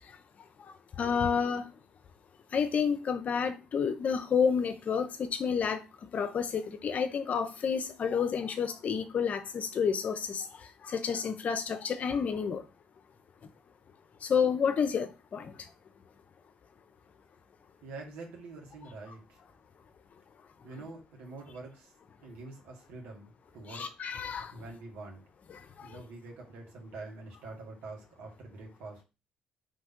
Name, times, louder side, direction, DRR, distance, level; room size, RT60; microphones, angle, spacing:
voice 1, 1.0-1.7 2.5-5.8 6.1-10.5 10.8-12.6 14.2-15.5 23.7-24.5 25.5-26.0, left 6 dB, 50° left, 0.7 m, -30 dB
voice 2, 17.8-19.4 20.6-21.9 22.2-23.9 24.5-25.3 25.8-29.0, right 3 dB, 80° right, 1.9 m, -46 dB
4.1 x 3.3 x 3.7 m
supercardioid pair, 80°, 3 cm